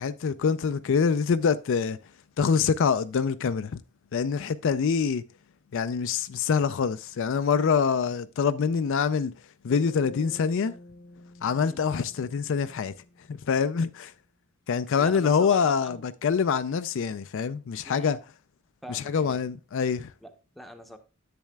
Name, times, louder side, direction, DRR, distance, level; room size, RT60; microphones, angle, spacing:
voice 1, 0.0-2.0 2.4-3.8 4.1-5.2 5.7-9.3 9.6-10.7 11.4-12.9 13.3-14.1 14.7-18.2 18.9-20.1, left 6 dB, 65° left, 0.4 m, -25 dB
Bass guitar, 9.7-13.8, left 1 dB, 45° left, 0.8 m, -49 dB
voice 2, 15.0-16.1 17.9-18.2 18.8-19.4 20.2-21.0, equal, ahead, 0.8 m, -44 dB
10.5 x 7.5 x 2.3 m
head